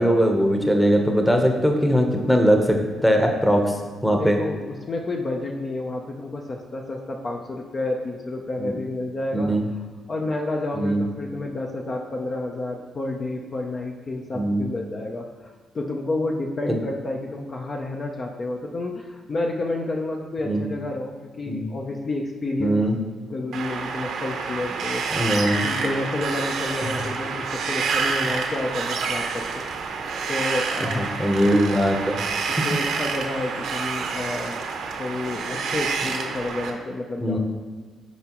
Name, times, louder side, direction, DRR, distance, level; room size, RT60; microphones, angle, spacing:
voice 1, 0.0-3.8 4.0-4.4 8.6-8.7 9.3-9.6 10.7-11.0 14.3-14.6 16.6-16.7 20.4-20.7 21.5-21.7 22.6-22.9 25.1-25.6 30.9-32.2 37.2-37.4, equal, 5° left, 3 dB, 0.9 m, -20 dB
voice 2, 4.1-9.5 10.1-22.8 23.3-25.0 25.6-29.6 30.3-31.2 31.4-31.7 32.5-34.6 35.0-37.4, left 2 dB, 40° left, 1 dB, 0.6 m, -30 dB
Wind, 23.5-36.7, right 5 dB, 75° right, 0.9 m, -28 dB
9.4 x 4.7 x 3.0 m, 1.5 s
cardioid pair, 90°, 0 cm